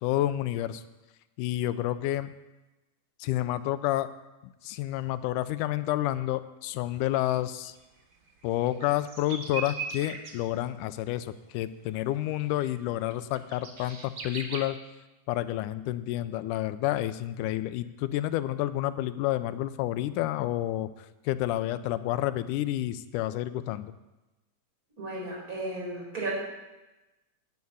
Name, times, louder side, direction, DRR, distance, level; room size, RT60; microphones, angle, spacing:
voice 1, 0.0-0.8 1.4-2.3 3.2-4.1 4.4-7.8 8.4-14.8 15.3-20.9 21.3-23.9, left 14 dB, 85° left, 13 dB, 2.1 m, -29 dB
sound 1, 7.0-7.1 7.3-7.4 7.7-10.4 11.6-11.7 12.1-14.6, right 4 dB, 50° right, 1.8 m, -39 dB
voice 2, 25.0-26.3, right 2 dB, 25° right, -4 dB, 5.0 m, -34 dB
9.4 x 8.5 x 9.4 m, 1.1 s
omnidirectional pair, 3.6 m